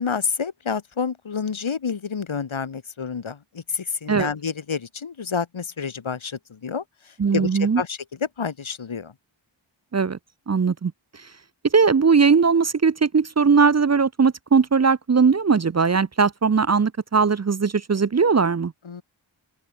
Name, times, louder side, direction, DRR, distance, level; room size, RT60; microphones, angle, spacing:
voice 1, 0.0-8.0 8.4-9.1 18.8-19.0, left 6 dB, 80° left, 2.9 m, -29 dB
voice 2, 7.2-7.8 9.9-10.2 10.5-10.9 11.7-18.7, right 5 dB, 35° right, 0.6 m, -19 dB
open air
wide cardioid pair, 100°, 48 cm